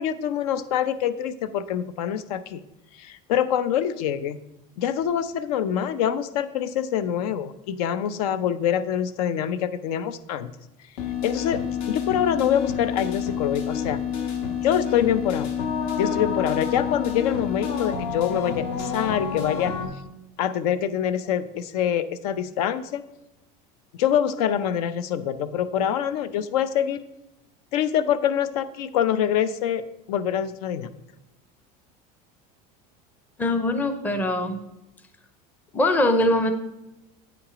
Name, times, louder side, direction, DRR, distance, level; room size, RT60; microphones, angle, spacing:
voice 1, 0.0-2.6 3.0-4.4 4.8-10.5 11.2-14.0 14.6-15.5 16.0-19.8 20.4-23.0 24.0-27.0 27.7-30.9, left 9 dB, 85° left, 13 dB, 0.6 m, -25 dB
sound 1, 11.0-19.9, left 7 dB, 70° left, 1.5 m, -28 dB
voice 2, 33.4-34.6 35.7-36.5, left 1 dB, 10° left, 8 dB, 0.5 m, -22 dB
8.6 x 5.9 x 5.0 m, 0.94 s
cardioid pair, 175°, 19 cm